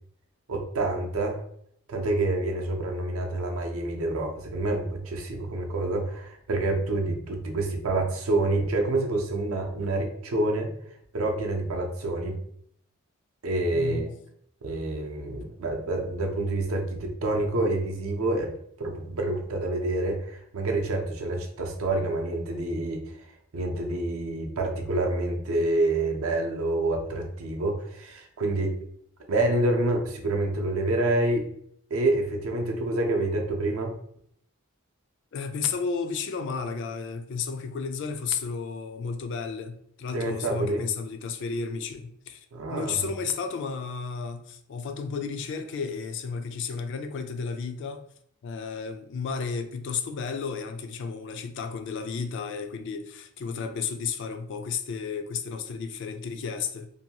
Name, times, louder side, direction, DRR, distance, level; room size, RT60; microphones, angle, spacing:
voice 1, 0.5-1.4 1.9-10.7 11.1-12.4 13.4-14.1 14.6-18.5 18.8-23.0 23.5-28.7 29.3-31.4 31.9-34.0 40.1-40.8 42.5-43.1, right 2 dB, 75° right, 0.5 m, -27 dB
voice 2, 13.7-14.1 35.3-48.1 48.4-56.9, left 5 dB, 60° left, 0.3 m, -33 dB
2.6 x 2.2 x 2.8 m
head